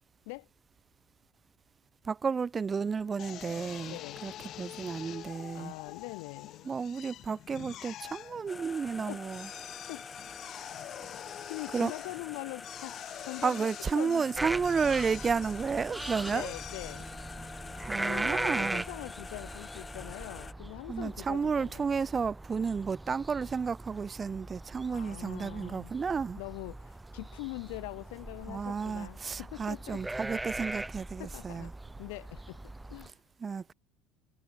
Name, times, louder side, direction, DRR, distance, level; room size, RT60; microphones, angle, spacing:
voice 1, 2.0-4.3 4.6-5.7 6.6-9.5 11.7-11.9 13.4-16.5 17.9-18.9 20.9-26.4 28.5-31.7 33.4-33.7, right 5 dB, 25° right, 0.4 m, -32 dB
Drill, 3.2-18.5, left 12 dB, 55° left, 1.9 m, -47 dB
voice 2, 3.8-4.2 5.5-6.7 9.1-9.2 9.9-10.0 11.5-13.7 13.9-14.3 16.3-17.2 17.9-21.8 23.5-23.6 24.9-25.9 26.4-30.0 30.6-30.7 31.2-31.7 32.0-32.6 32.9-33.1, left 33 dB, 85° left, 5.8 m, -43 dB
sound 1, 8.5-20.5, left 4 dB, 20° left, 1.0 m, -46 dB
sound 2, 14.3-33.1, right 2 dB, 10° right, 1.2 m, -40 dB
supercardioid pair, 110°, 0 cm